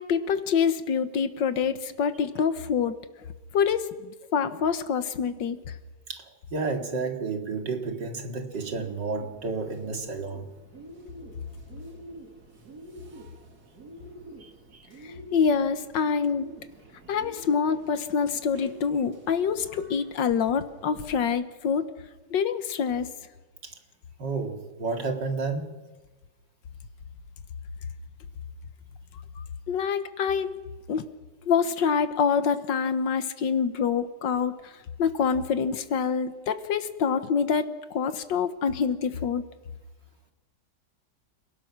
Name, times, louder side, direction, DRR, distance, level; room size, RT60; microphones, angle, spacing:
voice 1, 0.0-3.0 3.5-5.6 15.0-16.5 17.1-21.9 22.3-23.1 29.7-30.5 30.9-31.0 31.5-34.7 35.0-39.5, left 6 dB, 85° left, 1.9 m, -26 dB
voice 2, 6.5-10.5 14.4-14.9 23.6-23.7 24.2-25.8, right 4 dB, 80° right, 3.0 m, -31 dB
Bird, 8.5-21.3, right 1 dB, 60° right, 2.7 m, -47 dB
29.5 x 17.5 x 6.1 m
omnidirectional pair, 1.9 m